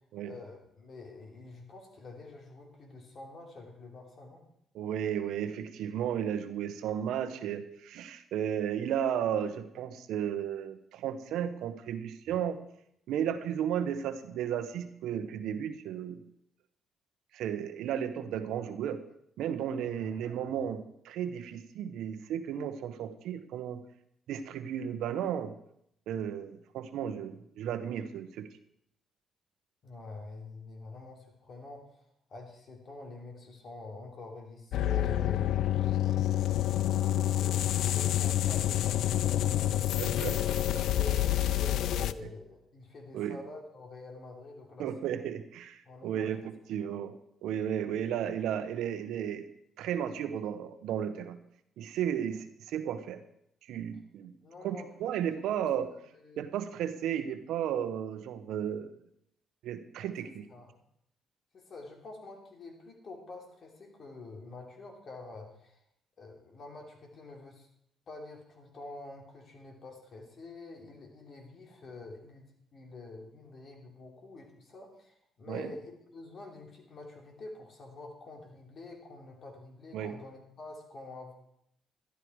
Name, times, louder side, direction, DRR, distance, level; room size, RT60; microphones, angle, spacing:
voice 1, 0.2-4.5 19.8-20.7 29.8-35.6 36.0-40.4 40.9-44.9 45.8-46.4 46.8-47.0 54.4-54.9 55.2-55.7 56.1-56.4 60.0-60.8 61.5-65.8 66.2-67.7 68.1-81.3, left 3 dB, 50° left, 2 dB, 3.1 m, -47 dB
voice 2, 4.7-12.6 13.1-16.2 17.3-19.0 19.4-23.8 24.3-25.5 26.1-28.5 40.0-40.3 43.1-43.4 44.8-46.4 46.7-47.1 47.4-49.4 49.8-51.4 51.8-53.2 53.7-54.3 54.6-55.9 56.4-58.9 59.6-60.5 75.5-75.7 79.9-80.1, right 9 dB, 85° right, 10 dB, 0.9 m, -34 dB
sound 1, 34.7-42.1, left 13 dB, 80° left, 0.4 m, -28 dB
12.0 x 11.5 x 4.7 m, 0.73 s
cardioid pair, 90°, 0 cm